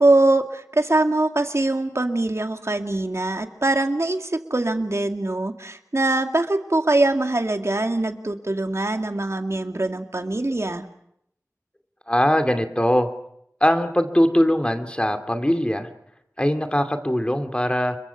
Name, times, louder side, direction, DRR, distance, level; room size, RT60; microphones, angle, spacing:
voice 1, 0.0-10.8, right 2 dB, 55° right, 6 dB, 2.3 m, -22 dB
voice 2, 12.1-13.1 13.6-15.9 16.4-18.0, equal, 20° left, 7 dB, 2.5 m, -21 dB
29.5 x 23.0 x 5.8 m, 0.75 s
wide cardioid pair, 45°, 6 cm